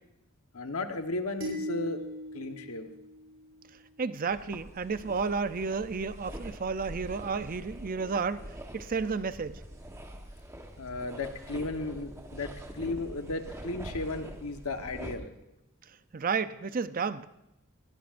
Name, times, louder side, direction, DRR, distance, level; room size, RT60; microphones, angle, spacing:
voice 1, 0.5-2.0 2.3-2.9 10.8-15.3, left 2 dB, 75° left, 1.2 m, -35 dB
sound 1, 1.4-3.8, equal, 70° right, 6.7 m, -39 dB
voice 2, 4.0-8.4 8.7-9.7 16.1-17.3, right 5 dB, 40° right, 0.5 m, -32 dB
sound 2, 4.3-15.2, right 1 dB, 15° right, 1.1 m, -44 dB
20.5 x 18.5 x 2.6 m
head